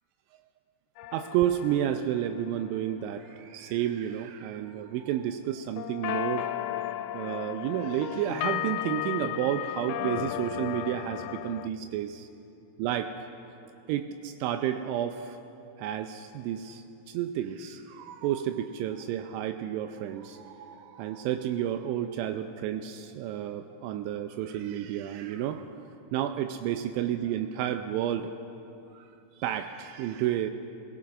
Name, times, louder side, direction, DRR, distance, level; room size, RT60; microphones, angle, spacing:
sound 1, 1.0-3.1 5.8-11.7, left 13 dB, 90° left, 2.9 m, -34 dB
voice 1, 1.1-6.5 7.1-12.3 12.8-13.3 13.9-15.4 15.8-25.7 26.1-28.3 28.9-29.1 29.4-30.5, right 11 dB, 90° right, 6 dB, 2.9 m, -31 dB
29.0 x 17.0 x 2.5 m, 2.7 s
omnidirectional pair, 5.2 m